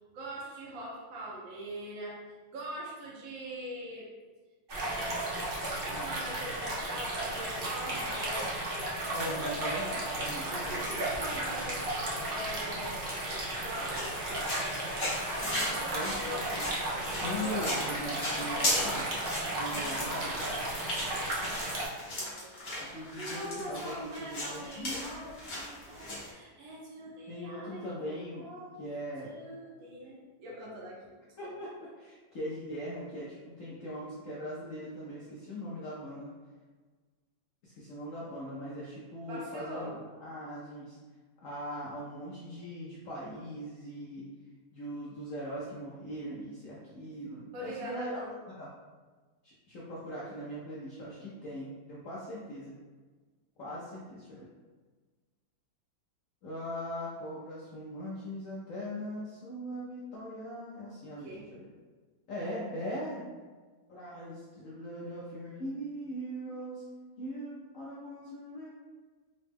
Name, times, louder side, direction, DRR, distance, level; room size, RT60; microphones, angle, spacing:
voice 1, 0.1-2.2 2.5-4.1 4.7-5.5 5.9-9.4 10.4-15.1 15.3-16.6 17.1-17.8 18.2-19.1 19.7-22.5 22.9-28.8 29.2-31.1 31.4-31.5 39.3-40.0 47.5-48.3 61.2-61.5, right 1 dB, 85° right, -4 dB, 1.6 m, -42 dB
sound 1, 4.7-21.9, right 1 dB, 60° right, 0.6 m, -34 dB
voice 2, 9.1-10.9 15.9-16.2 16.5-16.7 17.2-19.1 19.5-20.4 22.8-25.3 27.3-28.5 28.8-29.3 31.4-36.3 37.6-41.0 41.4-44.3 44.7-48.3 48.6-48.7 49.4-52.8 53.6-54.5 56.4-61.7 62.3-63.3 63.9-66.9 67.2-68.7, equal, 70° left, -7 dB, 0.7 m, -40 dB
sound 2, 10.1-10.5 10.8-12.0 12.6-12.7 13.2-13.3 13.9-26.3, left 1 dB, 40° left, 1.0 m, -37 dB
3.9 x 2.1 x 3.3 m, 1.4 s
omnidirectional pair, 2.1 m